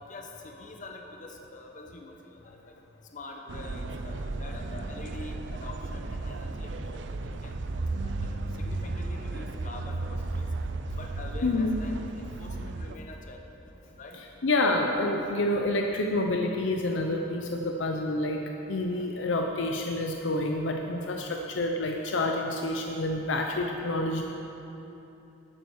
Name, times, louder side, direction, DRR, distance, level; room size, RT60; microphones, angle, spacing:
voice 1, 0.0-2.8 3.1-7.6 8.0-10.5 10.9-14.4 18.3-19.1 20.2-20.3, left 2 dB, 45° left, 2 dB, 0.9 m, -46 dB
sound 1, 3.5-13.0, right 2 dB, 75° right, 0.5 m, -34 dB
voice 2, 11.4-11.8 14.4-18.4 18.7-24.2, left 2 dB, 85° left, 2 dB, 0.7 m, -28 dB
12.0 x 8.9 x 4.8 m, 3.0 s
head